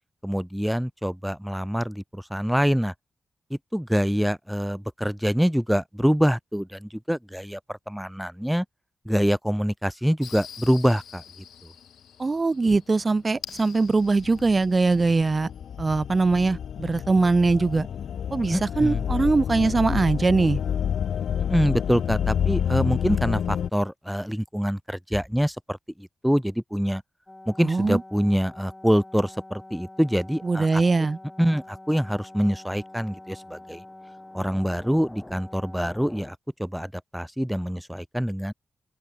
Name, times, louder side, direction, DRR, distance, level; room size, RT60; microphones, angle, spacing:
voice 1, 0.2-2.9 3.5-8.7 9.1-11.2 11.6-11.7 18.5-19.0 21.5-27.0 27.5-30.8 31.4-33.8 34.3-38.5, equal, ahead, 2.2 m, -25 dB
sound 1, 10.2-11.5 13.4-23.7, left 8 dB, 80° left, 0.8 m, -29 dB
voice 2, 12.2-15.5 15.8-17.9 18.3-20.6 27.6-28.0 30.4-31.5, right 3 dB, 35° right, 2.0 m, -22 dB
sound 2, 27.3-36.3, left 1 dB, 15° left, 7.2 m, -45 dB
cardioid pair, 65°, 0 cm